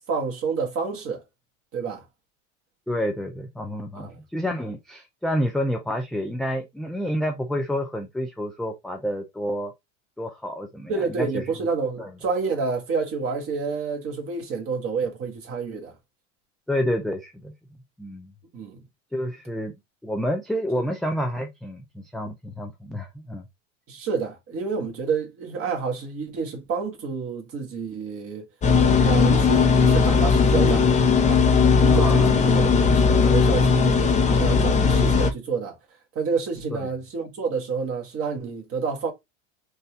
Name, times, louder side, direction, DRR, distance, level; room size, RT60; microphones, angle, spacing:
voice 1, 0.1-1.2 1.7-2.0 3.9-4.2 10.9-15.9 18.5-18.8 20.7-20.8 23.9-28.5 29.0-30.8 31.1-35.8 36.1-39.1, right 5 dB, 35° right, 1.7 m, -29 dB
voice 2, 2.9-9.7 10.2-10.9 11.2-11.3 12.0-12.1 16.7-17.5 18.0-18.3 19.1-19.7 20.0-23.4 31.9-32.3 36.7-36.8, equal, ahead, 0.3 m, -29 dB
sound 1, 28.6-35.3, left 5 dB, 20° left, 0.7 m, -18 dB
4.1 x 2.7 x 3.2 m
supercardioid pair, 120°, 37 cm